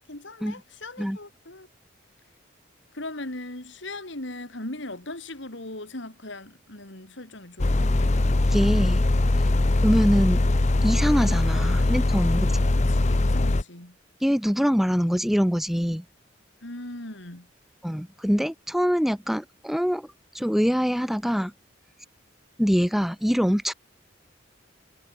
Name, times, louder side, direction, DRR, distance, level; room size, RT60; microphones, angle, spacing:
voice 1, 0.0-1.7 2.9-8.1 12.8-14.0 16.6-17.5, left 2 dB, 65° left, 3.7 m, -39 dB
sound 1, 7.6-13.6, left 2 dB, 35° left, 0.8 m, -21 dB
voice 2, 8.5-9.0 9.8-10.4 10.8-12.6 14.2-16.0 17.8-20.1 20.3-21.5 22.6-23.7, equal, ahead, 1.2 m, -24 dB
head